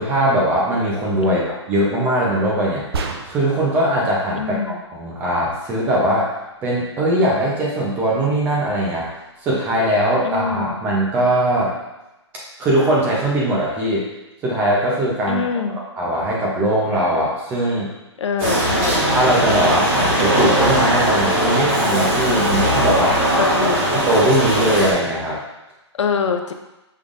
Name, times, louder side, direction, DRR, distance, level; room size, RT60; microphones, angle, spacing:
voice 1, 0.0-2.8 3.3-6.3 6.6-9.1 9.4-11.7 12.6-14.1 14.4-15.4 16.0-17.9 19.1-23.5 23.9-25.4, right 1 dB, 10° right, -4 dB, 0.6 m, -20 dB
sound 1, 2.9-3.7, right 3 dB, 60° right, 0.5 m, -27 dB
voice 2, 4.4-4.8 10.2-10.8 15.3-15.8 18.2-19.1 23.4-23.8 26.0-26.5, left 6 dB, 80° left, 6 dB, 0.5 m, -24 dB
sound 2, 18.4-24.9, right 1 dB, 30° right, 1.4 m, -19 dB
5.4 x 3.2 x 2.5 m, 0.98 s
hypercardioid pair, 165°, 15 cm